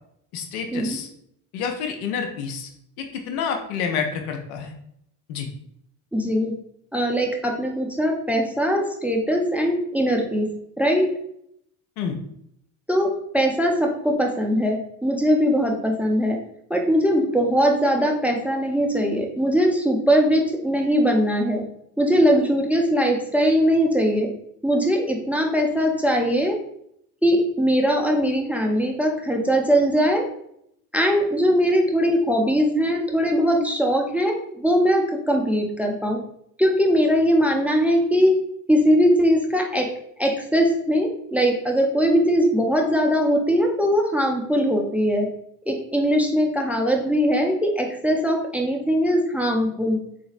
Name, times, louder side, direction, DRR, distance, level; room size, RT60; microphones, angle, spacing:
voice 1, 0.3-1.1 1.5-2.7 3.0-4.7 5.3-5.5 12.0-12.2, left 6 dB, 80° left, 4 dB, 0.6 m, -28 dB
voice 2, 6.1-6.5 6.9-10.5 10.8-11.1 12.9-16.4 16.7-21.6 22.0-24.3 24.6-26.6 27.2-30.3 30.9-36.2 36.6-38.4 38.7-39.9 40.2-45.3 45.7-50.0, equal, 5° right, 1 dB, 0.5 m, -21 dB
3.8 x 2.5 x 2.4 m, 0.73 s
hypercardioid pair, 60°, 42 cm